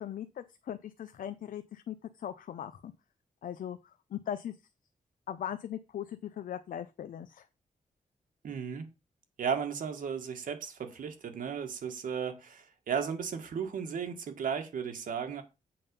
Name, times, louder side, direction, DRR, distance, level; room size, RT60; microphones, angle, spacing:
voice 1, 0.0-2.9 3.4-4.6 5.3-7.5, left 10 dB, 90° left, 0.6 m, -39 dB
voice 2, 8.4-8.9 9.4-15.4, right 7 dB, 80° right, 1.7 m, -35 dB
7.7 x 5.5 x 5.3 m
wide cardioid pair, 175°, 14 cm